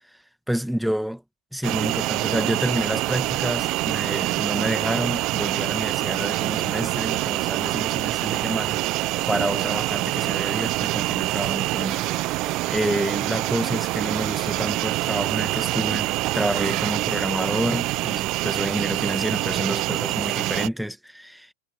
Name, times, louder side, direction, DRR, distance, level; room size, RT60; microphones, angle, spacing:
voice 1, 0.5-1.2 1.5-9.0 9.3-21.5, equal, ahead, 1.9 m, -29 dB
sound 1, 1.6-20.7, right 19 dB, 40° right, 1.0 m, -25 dB
figure-of-eight pair, 90°, 0 cm